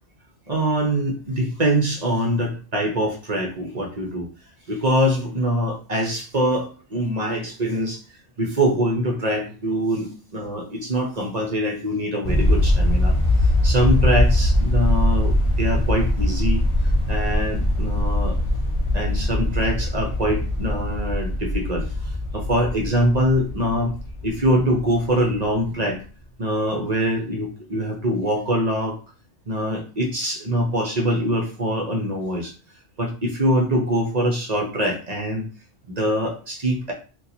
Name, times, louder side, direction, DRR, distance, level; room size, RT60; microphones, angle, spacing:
voice 1, 0.5-4.3 4.7-8.0 8.4-13.2 13.6-16.6 17.1-18.4 18.9-23.9 24.2-26.0 26.4-29.0 29.5-32.5 33.0-35.5 35.9-36.9, equal, 45° right, 1 dB, 0.6 m, -23 dB
sound 1, 12.2-25.5, left 1 dB, 35° left, 0.6 m, -22 dB
2.8 x 2.3 x 4.0 m, 0.36 s
omnidirectional pair, 1.2 m